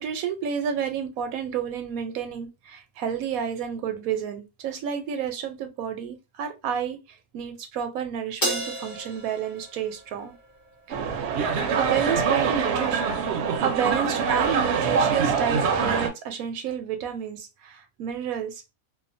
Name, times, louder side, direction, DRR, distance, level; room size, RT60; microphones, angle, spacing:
voice 1, 0.0-10.3 10.9-11.0 11.7-18.6, right 8 dB, 85° right, 1.1 m, -30 dB
Crash cymbal, 8.4-10.9, right 1 dB, 15° left, 1.0 m, -32 dB
sound 1, 10.9-16.1, right 6 dB, 65° right, 0.7 m, -24 dB
2.7 x 2.2 x 2.5 m
omnidirectional pair, 1.5 m